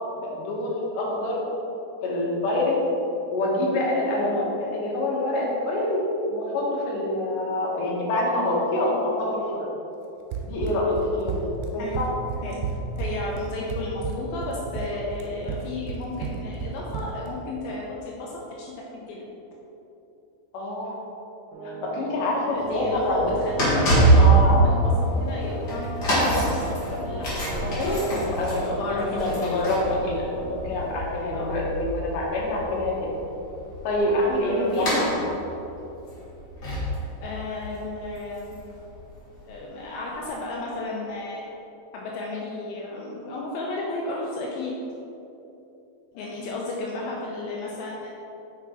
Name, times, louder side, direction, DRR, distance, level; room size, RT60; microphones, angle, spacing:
voice 1, 0.2-1.4 2.0-2.7 3.3-6.0 6.3-9.7 10.4-12.1 15.4-15.6 20.5-21.0 21.6-23.3 24.2-24.6 27.3-33.2 33.8-35.1 46.1-46.4 46.9-47.4, left 1 dB, 70° left, -4 dB, 2.7 m, -26 dB
Run, 10.3-17.3, right 6 dB, 85° right, 2.5 m, -32 dB
voice 2, 13.0-19.3 22.5-27.4 28.0-29.5 31.3-31.7 34.4-35.1 37.2-38.6 39.5-41.4 41.9-44.7 46.2-48.1, left 2 dB, 85° left, -4 dB, 2.5 m, -33 dB
sound 1, 21.5-31.0, right 2 dB, 65° right, 2.5 m, -36 dB
sound 2, 22.5-39.5 40.1-40.2, right 2 dB, 40° left, 1.6 m, -25 dB
6.1 x 5.9 x 4.3 m, 3.0 s
omnidirectional pair, 4.2 m